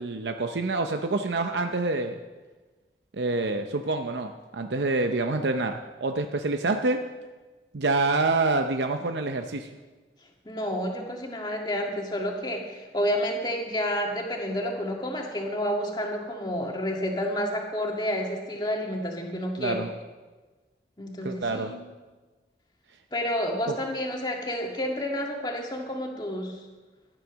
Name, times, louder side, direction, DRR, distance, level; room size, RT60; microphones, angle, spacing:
voice 1, 0.0-2.2 3.1-7.0 7.7-9.7 19.6-19.9 21.2-21.7, right 3 dB, 85° right, 5 dB, 0.7 m, -27 dB
voice 2, 10.5-19.9 21.0-21.8 23.1-26.6, equal, 25° left, 1 dB, 1.9 m, -30 dB
14.0 x 10.0 x 6.2 m, 1.3 s
head